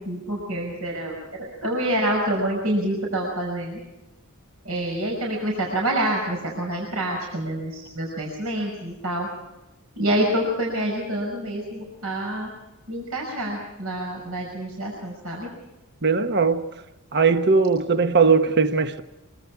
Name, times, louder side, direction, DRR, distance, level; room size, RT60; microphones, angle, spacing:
voice 1, 0.0-3.8 4.6-9.3 10.0-12.5 12.9-15.5, right 1 dB, 75° right, 5.8 m, -27 dB
voice 2, 16.0-16.7 17.1-19.0, right 4 dB, 50° right, 1.2 m, -19 dB
24.5 x 24.0 x 4.8 m
head